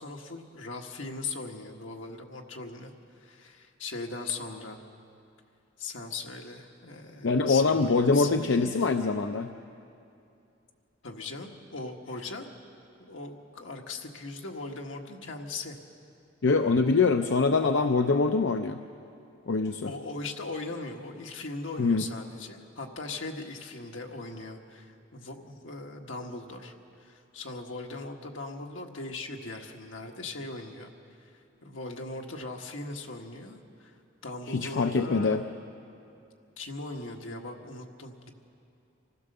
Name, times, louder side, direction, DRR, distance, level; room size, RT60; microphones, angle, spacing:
voice 1, 0.0-4.8 5.8-8.7 11.0-12.4 13.0-15.8 19.8-26.7 27.0-30.9 31.2-31.3 31.6-33.9 34.2-35.4 36.6-38.3, left 3 dB, 85° left, 2 dB, 1.5 m, -39 dB
voice 2, 7.2-9.5 16.4-18.8 19.5-19.9 21.8-22.0 34.5-35.4, left 4 dB, 70° left, 6 dB, 0.6 m, -24 dB
25.5 x 15.5 x 6.7 m, 2.6 s
head